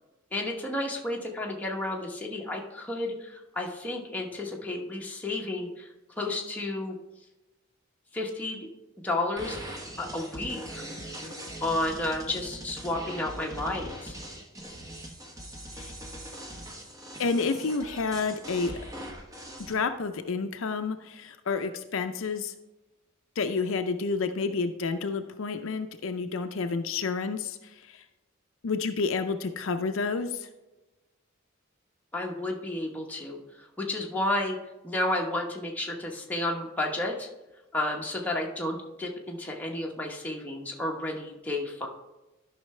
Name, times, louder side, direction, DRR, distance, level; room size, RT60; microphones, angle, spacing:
voice 1, 0.3-5.9 6.2-7.0 8.1-8.7 9.0-9.6 10.0-10.8 11.6-14.2 32.1-34.6 34.8-37.3 37.7-41.9, left 1 dB, 10° left, -1 dB, 1.0 m, -32 dB
sound 1, 9.4-19.7, equal, 15° right, 1.1 m, -41 dB
voice 2, 17.2-18.8 19.7-22.5 23.4-27.6 27.9-28.0 28.6-30.5, left 4 dB, 65° left, 8 dB, 0.5 m, -30 dB
13.0 x 5.7 x 3.2 m, 1.1 s
head